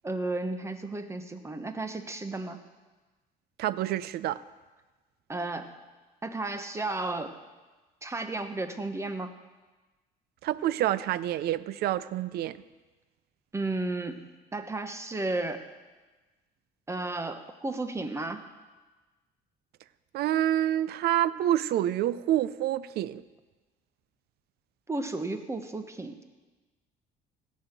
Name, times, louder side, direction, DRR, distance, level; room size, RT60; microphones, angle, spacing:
voice 1, 0.0-2.6 5.3-5.7 6.2-7.3 8.0-9.3 13.5-15.6 16.9-18.4 24.9-26.2, right 2 dB, 15° right, 8 dB, 1.2 m, -33 dB
voice 2, 3.6-4.4 10.4-12.6 20.1-23.2, right 12 dB, 70° right, 17 dB, 0.5 m, -27 dB
17.0 x 6.5 x 9.1 m, 1.2 s
cardioid pair, 110°, 17 cm